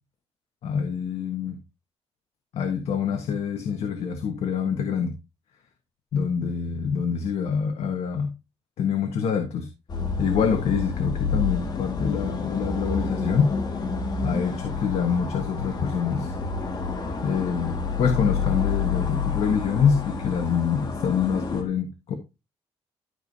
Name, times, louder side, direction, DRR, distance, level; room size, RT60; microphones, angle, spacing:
voice 1, 0.6-1.6 2.5-5.1 6.1-8.3 8.8-9.7 10.2-13.5 14.2-16.4 17.2-22.1, left 7 dB, 75° left, 5 dB, 1.3 m, -25 dB
sound 1, 9.9-21.6, left 5 dB, 40° left, 1.8 m, -29 dB
12.5 x 5.4 x 2.7 m, 0.25 s
wide cardioid pair, 170°, 11 cm